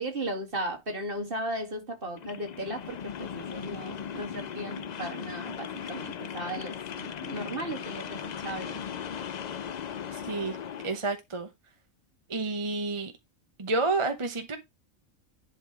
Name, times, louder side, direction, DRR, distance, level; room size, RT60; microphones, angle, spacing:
voice 1, 0.0-8.8, right 1 dB, 40° right, 2.4 m, -36 dB
sound 1, 2.1-11.0, left 8 dB, 80° left, 0.3 m, -38 dB
voice 2, 10.1-10.6 10.8-11.5 12.3-13.1 13.6-14.6, right 3 dB, 25° right, 0.8 m, -29 dB
11.0 x 3.9 x 4.7 m
omnidirectional pair, 1.4 m